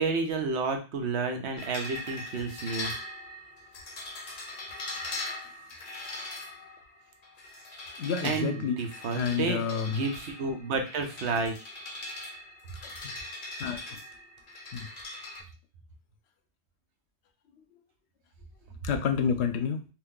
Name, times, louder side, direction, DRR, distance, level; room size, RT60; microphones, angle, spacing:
voice 1, 0.0-2.9 8.2-11.5, right 4 dB, 80° right, 5 dB, 1.0 m, -31 dB
sound 1, 1.6-15.4, left 2 dB, 45° left, 0.7 m, -41 dB
voice 2, 8.0-8.8 9.1-10.0 12.8-12.9 13.6-14.0 14.7-14.9 18.8-19.9, left 6 dB, 75° left, 8 dB, 0.8 m, -29 dB
2.7 x 2.6 x 3.6 m, 0.33 s
omnidirectional pair, 1.1 m